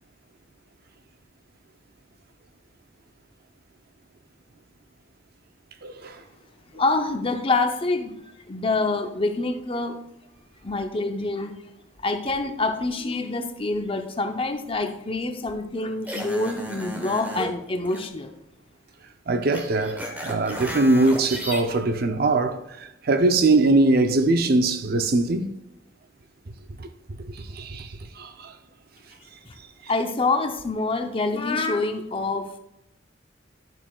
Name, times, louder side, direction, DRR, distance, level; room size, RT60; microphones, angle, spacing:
voice 1, 5.8-6.2 19.3-22.6 23.0-25.5 26.8-26.9 27.2-27.9 28.2-28.5, right 2 dB, 55° right, 0.6 m, -21 dB
voice 2, 6.7-10.0 10.6-11.5 12.0-18.3 29.5-29.6 29.9-32.6, left 3 dB, 30° left, 0.7 m, -26 dB
sound 1, 16.1-17.5 17.8-18.0 19.5-21.6, equal, 10° right, 1.1 m, -33 dB
10.5 x 7.2 x 2.3 m
head